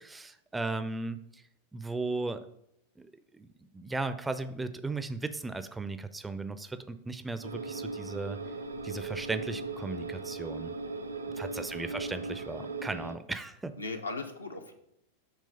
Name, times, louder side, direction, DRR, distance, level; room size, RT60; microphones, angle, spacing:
voice 1, 0.0-1.4 1.7-2.5 3.0-3.5 3.7-8.4 8.8-10.7 11.4-13.7, right 3 dB, 10° right, 11 dB, 0.4 m, -36 dB
sound 1, 7.4-13.2, right 3 dB, 75° right, 0.5 m, -38 dB
voice 2, 11.6-12.0 13.8-14.7, left 3 dB, 80° left, 5 dB, 0.7 m, -39 dB
6.5 x 3.2 x 5.3 m, 0.75 s
figure-of-eight pair, 90°, 0 cm